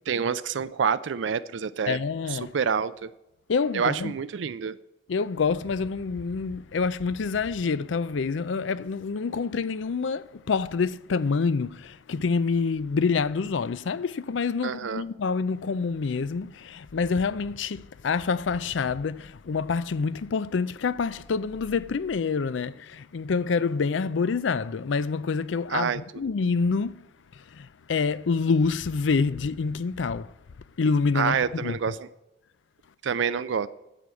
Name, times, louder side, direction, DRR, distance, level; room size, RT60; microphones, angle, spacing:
voice 1, 0.1-2.0 2.3-3.1 3.7-4.8 14.6-15.0 25.7-26.0 31.1-32.1 33.0-33.7, right 6 dB, 85° right, 0.4 m, -27 dB
voice 2, 1.9-2.5 3.5-4.1 5.1-27.0 27.5-30.3 30.8-31.4 31.6-31.8, left 5 dB, 90° left, 0.5 m, -27 dB
10.0 x 7.7 x 8.2 m
head